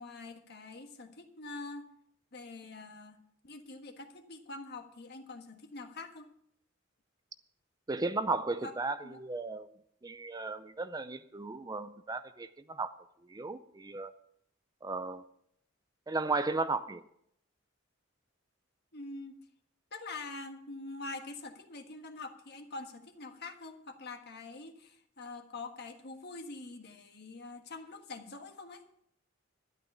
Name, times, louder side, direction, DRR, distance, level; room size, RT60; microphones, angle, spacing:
voice 1, 0.0-1.9 2.3-6.3 8.6-8.7 9.0-9.2 18.9-19.3 19.9-28.8, left 3 dB, 55° left, 6 dB, 1.5 m, -45 dB
voice 2, 7.9-9.7 10.0-12.9 13.3-14.1 14.8-15.2 16.1-17.0, right 3 dB, 20° right, 12 dB, 0.5 m, -35 dB
12.5 x 11.0 x 5.5 m, 0.70 s
head